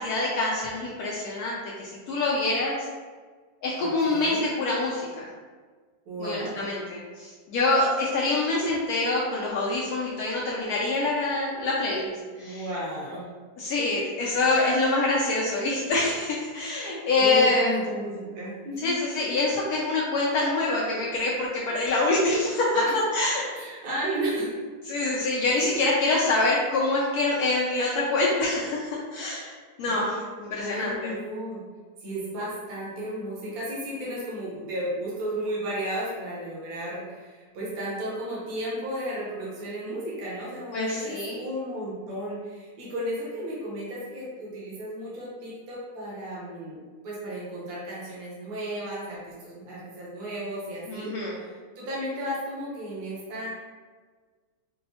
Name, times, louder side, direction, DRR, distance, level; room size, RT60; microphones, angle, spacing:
voice 1, 0.0-2.9 3.6-5.3 6.2-12.6 13.6-17.7 18.8-22.7 23.1-23.4 24.9-29.5 29.8-31.2 40.7-41.4 50.9-51.3, left 2 dB, 75° left, -5 dB, 1.0 m, -25 dB
voice 2, 3.8-4.4 6.1-6.7 12.4-13.3 15.5-15.9 17.2-18.9 22.7-22.9 23.5-24.5 25.6-25.9 29.8-30.2 30.6-31.6 32.0-53.5, right 1 dB, 65° right, -7 dB, 1.4 m, -34 dB
4.4 x 2.0 x 2.7 m, 1.5 s
omnidirectional pair, 1.7 m